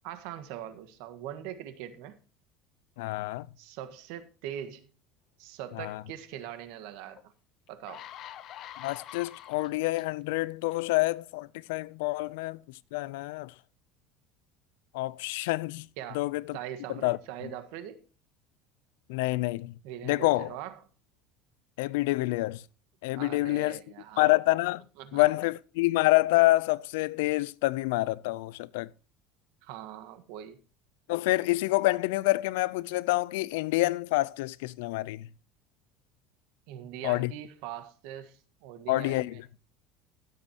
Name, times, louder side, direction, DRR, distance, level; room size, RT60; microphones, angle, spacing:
voice 1, 0.0-2.2 3.6-4.9 5.4-7.2 7.7-8.1 16.0-16.2 16.5-18.0 19.8-20.8 23.1-24.4 25.0-25.2 29.6-30.6 36.7-39.4, right 11 dB, 75° right, 1.6 m, -42 dB
voice 2, 3.0-3.5 5.8-6.0 8.8-12.6 12.9-13.5 14.9-15.9 16.1-16.6 16.9-17.2 19.1-19.7 20.0-20.5 21.8-22.6 23.0-23.8 24.2-24.8 25.1-28.9 31.1-35.3 37.0-37.3 38.9-39.4, left 20 dB, 85° left, 0.5 m, -27 dB
sound 1, 7.1-7.2 7.7-10.0 10.7-10.9, left 12 dB, 45° left, 0.8 m, -45 dB
16.0 x 7.6 x 2.9 m
cardioid pair, 140°, 0 cm